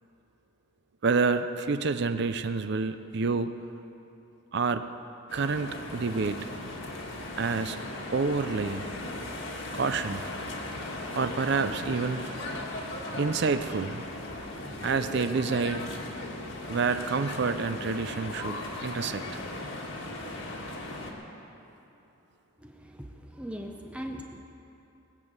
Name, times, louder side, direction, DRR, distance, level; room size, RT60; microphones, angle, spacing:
voice 1, 1.0-3.5 4.5-4.9 5.3-6.4 7.4-7.8 8.1-8.8 9.7-10.2 11.2-12.3 13.1-14.0 14.8-15.9 16.7-19.2, right 4 dB, 55° right, 10 dB, 0.5 m, -28 dB
sound 1, 5.3-21.1, left 2 dB, 60° left, 1.8 m, -37 dB
voice 2, 22.6-24.4, equal, 5° right, 3 dB, 0.6 m, -40 dB
20.5 x 7.2 x 8.1 m, 2.9 s
head